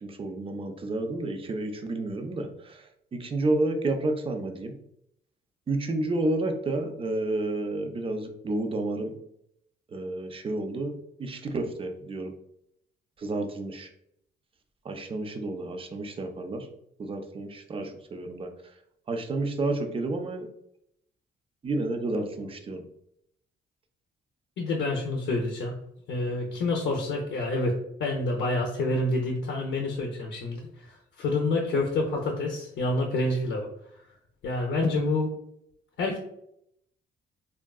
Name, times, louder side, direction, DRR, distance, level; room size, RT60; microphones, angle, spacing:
voice 1, 0.0-2.8 3.1-4.7 5.7-9.1 9.9-12.3 13.2-13.9 14.8-16.7 17.0-18.5 19.1-20.5 21.6-22.8, right 2 dB, 25° right, 5 dB, 0.4 m, -30 dB
voice 2, 24.6-25.8 26.1-33.7 34.4-35.3 36.0-36.2, left 2 dB, 65° left, 0 dB, 0.5 m, -28 dB
3.6 x 2.2 x 2.3 m, 0.75 s
cardioid pair, 90°, 20 cm